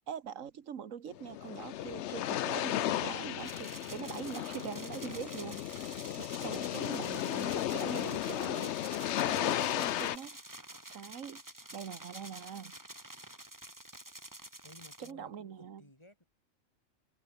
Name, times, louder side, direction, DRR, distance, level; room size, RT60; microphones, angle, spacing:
voice 1, 0.0-5.8 6.2-8.7 9.2-10.4 10.9-11.4 11.7-12.7 15.0-15.8, right 8 dB, 80° right, 1.6 m, -43 dB
sound 1, 1.1-10.2, left 12 dB, 65° left, 0.8 m, -34 dB
sound 2, 3.4-15.1, right 1 dB, 15° right, 2.4 m, -49 dB
sound 3, 5.1-10.3, left 2 dB, 80° left, 7.7 m, -60 dB
voice 2, 14.6-16.2, left 1 dB, 20° left, 4.0 m, -56 dB
omnidirectional pair, 1.3 m